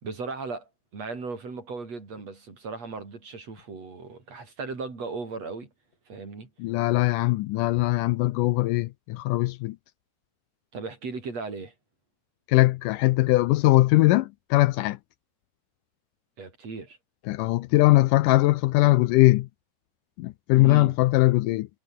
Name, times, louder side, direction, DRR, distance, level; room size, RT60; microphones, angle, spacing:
voice 1, 0.0-5.7 6.1-6.5 10.7-11.7 16.4-17.0 20.5-21.0, right 4 dB, 45° right, 6.2 m, -37 dB
voice 2, 6.6-9.8 12.5-15.0 17.3-19.5 20.2-21.7, left 18 dB, 80° left, 2.1 m, -21 dB
omnidirectional pair, 4.0 m